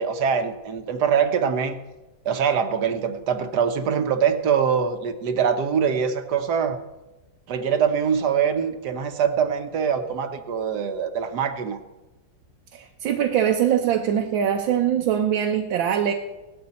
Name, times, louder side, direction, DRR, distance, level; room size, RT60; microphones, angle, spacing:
voice 1, 0.0-1.8 2.2-6.8 7.5-11.8, right 7 dB, 60° right, 8 dB, 1.5 m, -23 dB
voice 2, 12.7-16.1, right 9 dB, 80° right, 4 dB, 1.6 m, -22 dB
17.5 x 12.5 x 4.2 m, 1.1 s
omnidirectional pair, 2.1 m